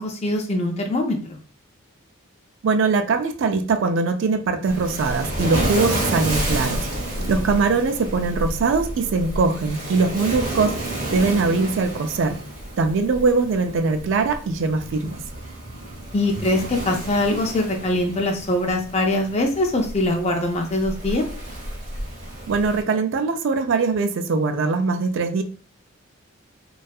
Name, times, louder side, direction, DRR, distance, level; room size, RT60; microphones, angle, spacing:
voice 1, 0.0-1.4 7.2-7.3 16.1-21.3, left 1 dB, 30° left, 3 dB, 0.4 m, -23 dB
voice 2, 2.6-12.4 12.8-15.2 22.5-25.4, right 4 dB, 60° right, 7 dB, 0.3 m, -22 dB
Waves surf, 4.6-22.8, right 1 dB, 35° right, 0.8 m, -30 dB
2.6 x 2.3 x 2.3 m, 0.39 s
head